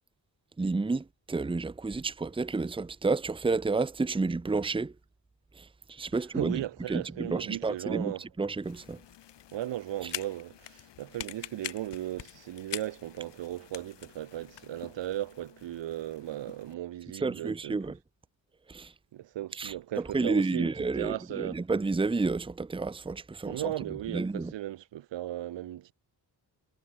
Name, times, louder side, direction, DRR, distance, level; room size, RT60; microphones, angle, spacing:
voice 1, 0.6-4.9 5.6-6.6 6.9-8.1 8.4-9.0 17.1-17.9 18.7-18.9 19.6-19.7 20.1-23.7 24.1-24.5, right 3 dB, 10° right, 0.9 m, -30 dB
voice 2, 6.1-8.3 9.5-17.8 19.1-21.6 23.4-25.9, right 13 dB, 90° right, 2.8 m, -36 dB
sound 1, 8.6-16.7, left 11 dB, 75° left, 4.2 m, -45 dB
cardioid pair, 130°, 42 cm